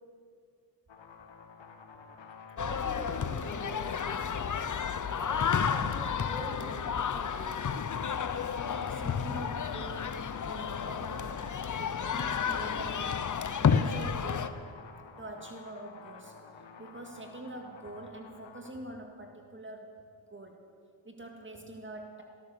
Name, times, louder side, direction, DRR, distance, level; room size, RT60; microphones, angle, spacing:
sound 1, 0.9-18.7, left 5 dB, 65° left, 2.0 m, -51 dB
sound 2, 2.6-14.5, left 7 dB, 40° left, 0.9 m, -31 dB
voice 1, 2.6-4.4 5.1-8.0 9.0-9.2, equal, 10° left, 3 dB, 2.4 m, -45 dB
voice 2, 8.6-10.2 10.5-13.3 13.6-14.6 15.2-16.3 16.8-20.0 20.3-20.6 21.0-22.2, right 2 dB, 25° right, 3 dB, 2.1 m, -45 dB
15.5 x 13.0 x 7.0 m, 2.2 s
cardioid pair, 65°, 48 cm